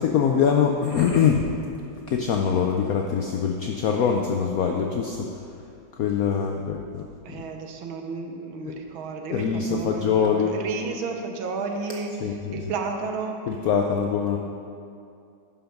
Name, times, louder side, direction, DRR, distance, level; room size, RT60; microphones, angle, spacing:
voice 1, 0.0-1.5 2.1-5.3 5.9-7.4 9.3-10.6 12.2-12.7 13.5-14.4, left 7 dB, 75° left, 2 dB, 0.8 m, -23 dB
voice 2, 7.2-12.1 12.5-13.4, right 4 dB, 80° right, 3 dB, 1.7 m, -32 dB
11.5 x 5.7 x 5.2 m, 2.5 s
omnidirectional pair, 2.2 m